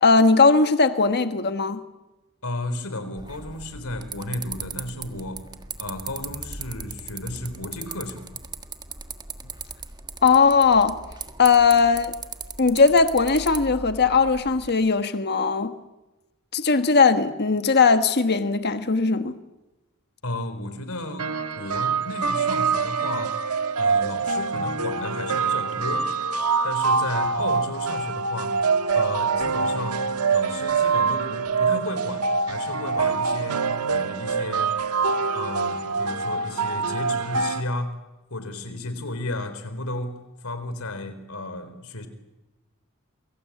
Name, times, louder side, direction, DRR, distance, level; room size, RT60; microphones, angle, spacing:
voice 1, 0.0-1.8 10.2-10.9 11.4-12.1 12.6-15.7 16.5-19.3, left 4 dB, 50° left, 1.4 m, -19 dB
voice 2, 2.4-5.5 5.8-8.3 20.2-21.3 21.6-23.4 23.8-26.1 26.6-28.6 28.9-30.0 30.3-34.8 35.3-38.0 38.3-42.1, left 1 dB, 70° left, 4.1 m, -33 dB
sound 1, 3.2-14.7, right 4 dB, 20° right, 1.6 m, -38 dB
sound 2, 21.2-37.6, right 5 dB, 90° right, 1.6 m, -25 dB
28.0 x 24.0 x 8.6 m
head